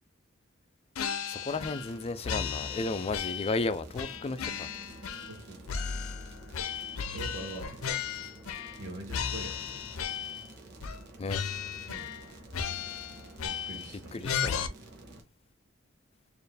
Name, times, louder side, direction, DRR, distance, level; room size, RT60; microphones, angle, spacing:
sound 1, 1.0-2.0 2.2-3.6 4.0-5.4 5.7-8.8 9.1-10.5 10.8-11.0 11.3-12.3 12.5-13.9 14.2-14.7, left 7 dB, 85° left, 0.5 m, -35 dB
voice 1, 1.3-4.4 11.2-11.4 14.1-14.7, left 3 dB, 30° left, 0.4 m, -33 dB
sound 2, 1.5-15.2, right 2 dB, 55° right, 1.1 m, -50 dB
voice 2, 5.2-6.0 7.1-7.8 8.8-9.8 11.9-12.1 13.4-14.1, right 2 dB, 80° right, 1.3 m, -44 dB
4.4 x 2.5 x 3.4 m
head